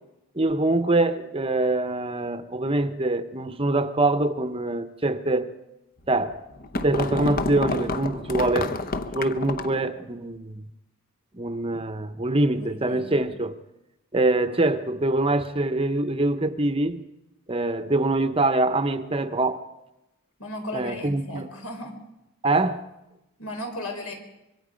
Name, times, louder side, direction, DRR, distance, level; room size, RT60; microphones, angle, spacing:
voice 1, 0.4-5.5 6.1-6.4 6.8-8.8 9.1-10.6 11.3-13.6 14.1-17.0 17.5-19.6 20.7-21.5 22.4-22.8, right 2 dB, 25° right, 0.8 m, -24 dB
sound 1, 6.1-9.8, left 3 dB, 40° left, 0.9 m, -29 dB
voice 2, 12.5-13.2 20.4-22.0 23.4-24.1, left 1 dB, 75° left, 4.8 m, -35 dB
25.5 x 23.0 x 5.1 m
head